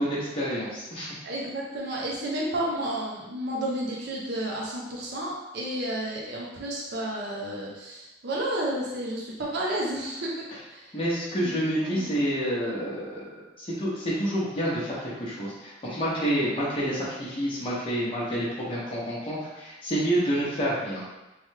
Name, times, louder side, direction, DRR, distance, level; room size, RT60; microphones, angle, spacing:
voice 1, 0.0-1.2 10.9-21.0, equal, 30° left, -8 dB, 0.7 m, -28 dB
voice 2, 1.2-10.9 11.4-11.5 11.7-12.1, right 1 dB, 60° right, -4 dB, 0.5 m, -31 dB
3.2 x 2.2 x 3.1 m, 1.0 s
head